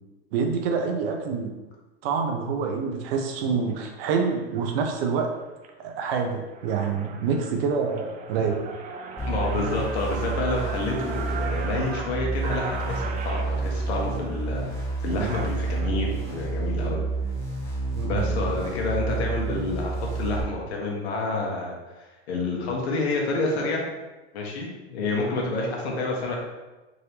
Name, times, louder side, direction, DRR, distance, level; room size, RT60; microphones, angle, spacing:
voice 1, 0.3-1.5 2.0-5.3 5.8-8.6 15.1-15.3 18.0-18.3, right 5 dB, 65° right, 3 dB, 0.8 m, -27 dB
sound 1, 3.7-3.9 4.5-4.8 5.3-5.7 6.1-6.2 6.5-15.9, right 4 dB, 25° right, 0.3 m, -38 dB
voice 2, 9.2-17.0 18.0-23.8 24.3-26.4, left 2 dB, 80° left, -1 dB, 1.2 m, -29 dB
sound 2, 9.2-20.4, right 3 dB, 10° left, 1.3 m, -29 dB
3.8 x 3.3 x 2.9 m, 1.1 s
supercardioid pair, 115°, 31 cm